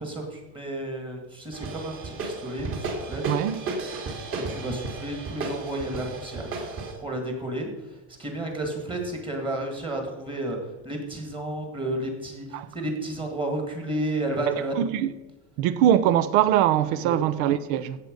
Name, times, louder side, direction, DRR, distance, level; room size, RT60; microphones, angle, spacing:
voice 1, 0.0-3.2 4.3-7.7 8.2-10.6 10.8-14.7 17.0-17.2, right 1 dB, 15° right, 1.9 m, -32 dB
sound 1, 1.5-6.9, right 3 dB, 35° right, 2.8 m, -33 dB
voice 2, 3.3-3.6 12.5-12.7 14.5-15.1 15.6-18.0, right 11 dB, 70° right, 0.9 m, -22 dB
16.0 x 6.9 x 5.2 m
cardioid pair, 175°, 37 cm